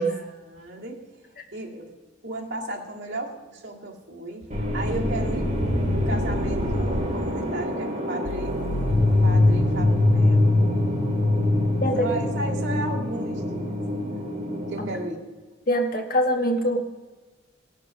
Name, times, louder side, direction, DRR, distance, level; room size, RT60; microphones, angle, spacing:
voice 1, 0.1-1.9 2.2-8.6 9.2-10.6 11.9-13.7 14.7-15.3, right 2 dB, 80° right, -2 dB, 2.0 m, -35 dB
sound 1, 4.5-15.0, left 1 dB, 40° right, 2.2 m, -23 dB
voice 2, 15.7-16.9, equal, 50° left, 4 dB, 1.2 m, -23 dB
16.5 x 6.7 x 6.2 m, 1.3 s
head